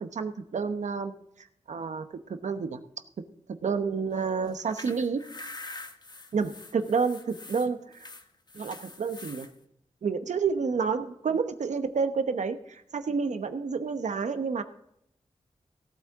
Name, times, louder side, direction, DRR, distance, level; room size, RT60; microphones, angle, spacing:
voice 1, 0.0-2.8 3.2-5.2 6.3-8.1 8.5-9.5 10.0-14.6, right 5 dB, 85° right, 9 dB, 0.9 m, -30 dB
sound 1, 4.5-9.5, left 2 dB, 35° left, 1.1 m, -45 dB
17.5 x 8.6 x 3.6 m, 0.76 s
wide cardioid pair, 75°, 12 cm